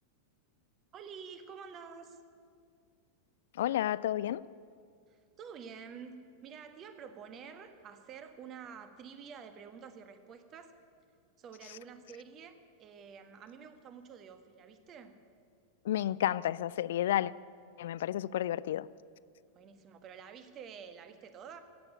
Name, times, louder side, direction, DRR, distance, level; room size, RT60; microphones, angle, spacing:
voice 1, 0.9-2.2 5.1-10.7 11.4-15.2 19.5-21.6, right 6 dB, 30° right, 1.3 m, -49 dB
voice 2, 3.5-4.4 15.8-17.3 17.8-18.9, left 12 dB, 60° left, 0.3 m, -31 dB
14.5 x 8.9 x 9.6 m
figure-of-eight pair, 90°, 0 cm